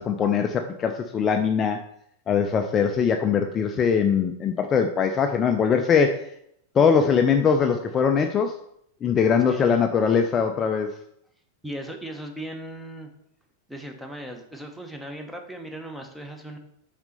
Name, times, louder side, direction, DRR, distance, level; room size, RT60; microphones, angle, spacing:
voice 1, 0.0-1.8 2.3-6.3 6.7-8.6 9.0-11.0, left 6 dB, 25° left, 5 dB, 0.5 m, -21 dB
voice 2, 9.4-9.8 11.6-13.1 13.7-16.6, right 1 dB, 5° right, 4 dB, 1.0 m, -37 dB
5.9 x 4.2 x 5.2 m, 0.71 s
figure-of-eight pair, 90°, 0 cm